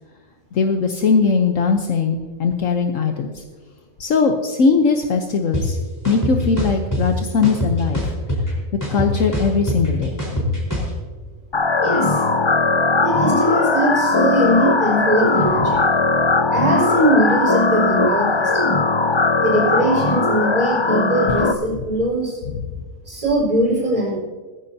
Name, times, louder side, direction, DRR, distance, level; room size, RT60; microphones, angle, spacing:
voice 1, 0.5-3.4 4.0-5.8 6.0-8.1 8.9-10.6 15.7-15.8 22.5-22.6, left 5 dB, 70° left, 4 dB, 1.3 m, -20 dB
sound 1, 5.5-5.6 6.0-7.0 7.4-8.5 8.8-10.9, equal, 15° left, 4.2 m, -23 dB
sound 2, 11.5-21.5, left 3 dB, 30° left, 0.5 m, -18 dB
voice 2, 11.8-12.2 13.0-15.8 16.5-18.8 19.4-22.4 23.0-24.2, right 1 dB, 30° right, -5 dB, 4.8 m, -21 dB
18.5 x 15.0 x 2.8 m, 1.4 s
omnidirectional pair, 1.4 m